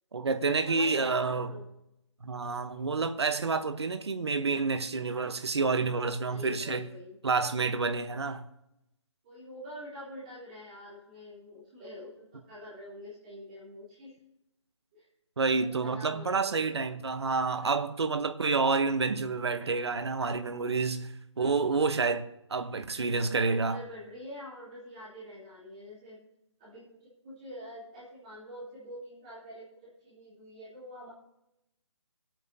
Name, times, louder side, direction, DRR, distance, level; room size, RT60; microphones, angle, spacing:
voice 1, 0.1-1.5 2.2-6.9 7.2-8.4 15.4-23.8, right 4 dB, 60° right, 1.0 m, -29 dB
voice 2, 0.6-1.7 6.2-7.2 9.2-14.1 14.9-15.0 15.6-16.7 21.3-22.1 23.0-26.2 26.6-31.1, left 1 dB, 15° right, 3.1 m, -46 dB
24.0 x 9.0 x 2.8 m
hypercardioid pair, 180°, 15 cm